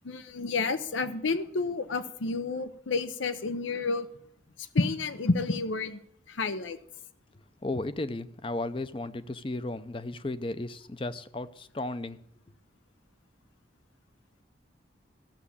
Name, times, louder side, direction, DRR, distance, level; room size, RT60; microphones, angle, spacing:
voice 1, 0.0-4.1 4.6-6.0 6.3-6.8, left 3 dB, 85° left, 0.7 m, -30 dB
voice 2, 7.6-12.2, left 2 dB, 25° left, 0.5 m, -34 dB
13.5 x 7.3 x 8.4 m
head